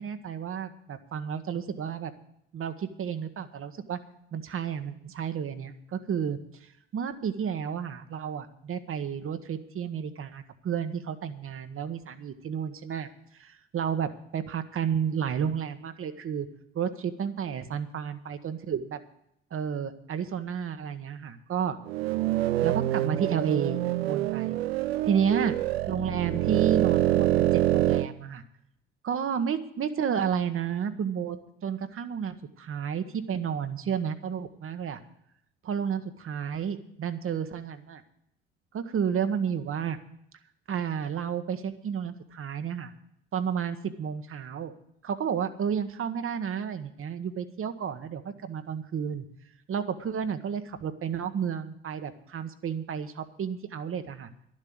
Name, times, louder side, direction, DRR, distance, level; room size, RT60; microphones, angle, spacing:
voice 1, 0.0-2.1 2.5-4.0 4.3-13.1 13.3-16.5 16.7-19.0 19.5-21.8 22.6-24.6 25.1-25.5 25.9-28.4 29.0-35.0 35.6-38.0 38.7-40.0 40.7-42.9 43.3-44.7 45.0-49.2 49.7-54.3, right 7 dB, 45° right, 9 dB, 1.2 m, -31 dB
sound 1, 21.9-28.1, right 14 dB, 90° right, 0.5 m, -26 dB
11.5 x 7.5 x 9.4 m, 0.74 s
hypercardioid pair, 60°, 30 cm